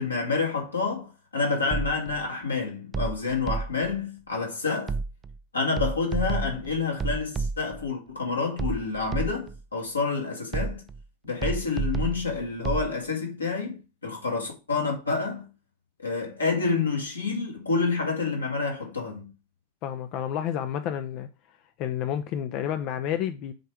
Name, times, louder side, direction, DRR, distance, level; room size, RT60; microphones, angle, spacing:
voice 1, 0.0-5.0 5.5-10.8 11.2-15.5 16.0-19.3, left 4 dB, 80° left, 2.4 m, -28 dB
sound 1, 1.7-2.2 2.9-4.0 4.9-5.4 5.8-7.9 8.6-9.6 10.5-11.0 11.4-12.9, right 4 dB, 20° right, 0.4 m, -31 dB
voice 2, 19.8-21.3 21.8-23.5, left 10 dB, 40° left, 0.6 m, -30 dB
7.7 x 3.4 x 4.9 m
figure-of-eight pair, 90°, 0 cm